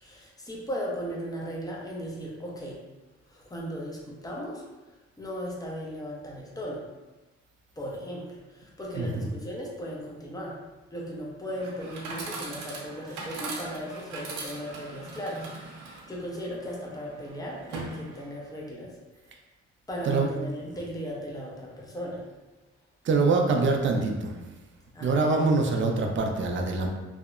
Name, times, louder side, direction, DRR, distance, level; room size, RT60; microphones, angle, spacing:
voice 1, 0.0-2.8 3.3-4.6 5.2-6.8 7.8-10.6 10.9-18.9 19.9-22.3 24.9-25.3, equal, 10° left, -4 dB, 0.6 m, -37 dB
Chatter / Coin (dropping), 11.5-18.5, right 3 dB, 90° right, 0.6 m, -40 dB
voice 2, 23.0-24.4 25.0-26.9, right 3 dB, 40° right, 2 dB, 0.4 m, -24 dB
2.8 x 2.0 x 2.4 m, 1.1 s
cardioid pair, 90°, 30 cm